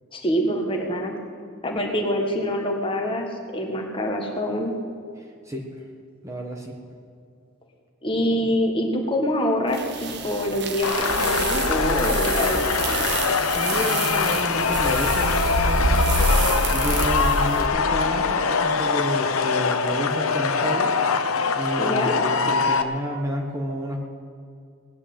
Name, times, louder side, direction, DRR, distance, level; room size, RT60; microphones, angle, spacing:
voice 1, 0.1-1.1 1.6-3.3 3.5-4.7 8.0-13.0 21.8-22.1, equal, 25° left, 2 dB, 1.6 m, -25 dB
voice 2, 6.2-6.8 13.5-16.1 16.7-20.9 21.5-24.0, equal, 15° right, 1 dB, 1.4 m, -30 dB
sound 1, 9.8-17.7, right 2 dB, 50° right, 1.2 m, -26 dB
sound 2, 10.8-22.8, left 5 dB, 75° left, 0.9 m, -23 dB
18.5 x 9.5 x 7.8 m, 2.3 s
head